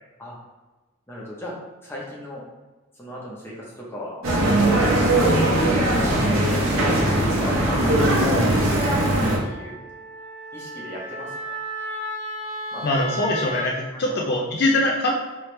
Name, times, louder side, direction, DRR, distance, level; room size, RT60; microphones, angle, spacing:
voice 1, 1.1-1.5 1.8-2.4 3.0-4.1 4.8-5.4 5.8-6.3 7.3-9.7 10.5-11.3 12.7-12.8 13.2-13.3 13.9-14.2, left 1 dB, 10° left, -5 dB, 0.8 m, -36 dB
sound 1, 4.2-9.4, right 1 dB, 80° right, 0.8 m, -20 dB
voice 2, 5.3-5.7 12.8-15.1, left 1 dB, 50° left, -1 dB, 0.4 m, -23 dB
Wind instrument woodwind instrument, 8.5-13.7, equal, 35° right, 0.8 m, -34 dB
3.2 x 3.1 x 3.2 m, 1.2 s
head